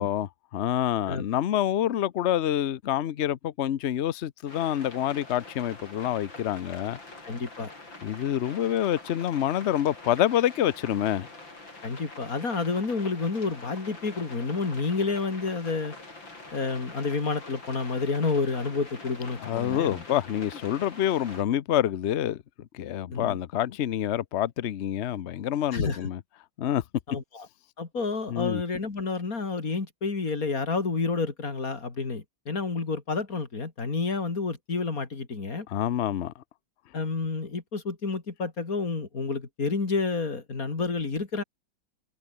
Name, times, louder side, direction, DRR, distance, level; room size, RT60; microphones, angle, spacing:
voice 1, 0.0-7.0 8.0-11.3 19.4-22.4 22.7-26.2 26.6-26.8 28.3-28.6 35.7-36.3, left 11 dB, 90° left, 0.6 m, -27 dB
sound 1, 4.5-21.4, left 2 dB, 70° left, 7.4 m, -45 dB
voice 2, 7.2-7.7 11.8-16.0 16.5-20.0 23.1-23.4 25.7-26.0 27.1-27.5 27.8-35.7 36.9-41.4, left 4 dB, 45° left, 3.4 m, -29 dB
omnidirectional pair, 2.2 m